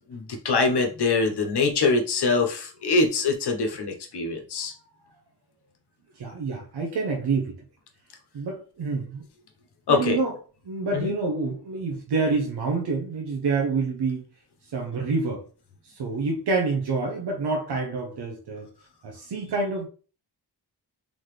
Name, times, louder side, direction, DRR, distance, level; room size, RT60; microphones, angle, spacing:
voice 1, 0.1-4.7 9.9-10.2 10.9-11.1, left 3 dB, 85° left, 1.1 m, -24 dB
voice 2, 6.2-7.6 8.3-9.2 9.9-10.3 10.6-14.2 14.7-15.4 15.8-18.7 19.0-19.9, right 4 dB, 85° right, 1.1 m, -27 dB
4.0 x 3.8 x 3.3 m
cardioid pair, 90°, 39 cm